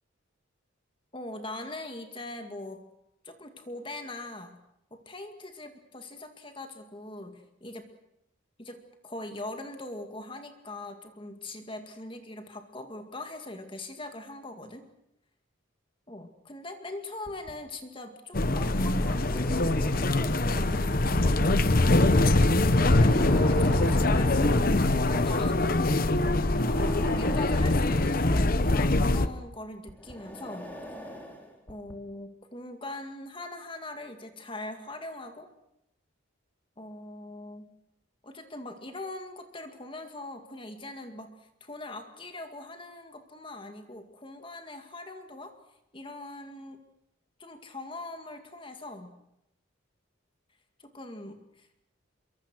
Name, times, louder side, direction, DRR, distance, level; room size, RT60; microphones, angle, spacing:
voice 1, 1.1-2.8 3.2-4.6 4.9-7.9 8.6-14.8 16.1-21.5 22.9-24.8 25.0-25.8 27.1-30.7 31.7-35.5 36.8-37.7 38.2-45.6 45.9-46.8 47.4-49.2 50.8-51.7, left 2 dB, 25° left, 6 dB, 2.1 m, -41 dB
sound 1, 17.3-17.5 18.8-20.4 20.9-21.1 22.7-24.7 26.3-28.3 29.9-31.9, equal, 10° left, 3.8 m, -44 dB
sound 2, 18.3-29.3, left 2 dB, 45° left, 1.0 m, -23 dB
26.5 x 24.0 x 6.2 m, 0.82 s
head